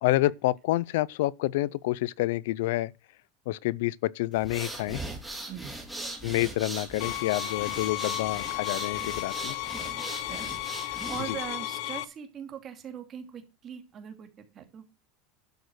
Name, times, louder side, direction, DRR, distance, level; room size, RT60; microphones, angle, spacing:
voice 1, 0.0-2.9 3.5-5.0 6.2-9.6 11.3-11.4, left 17 dB, 80° left, 0.5 m, -28 dB
sound 1, 4.3-11.5, right 1 dB, ahead, 3.7 m, -39 dB
voice 2, 5.5-5.8 9.3-9.4 9.8-10.5 10.8-14.3 14.5-14.8, right 8 dB, 30° right, 2.6 m, -41 dB
sound 2, 7.0-12.1, left 18 dB, 60° left, 1.0 m, -34 dB
11.5 x 6.5 x 6.3 m
supercardioid pair, 150°, 0 cm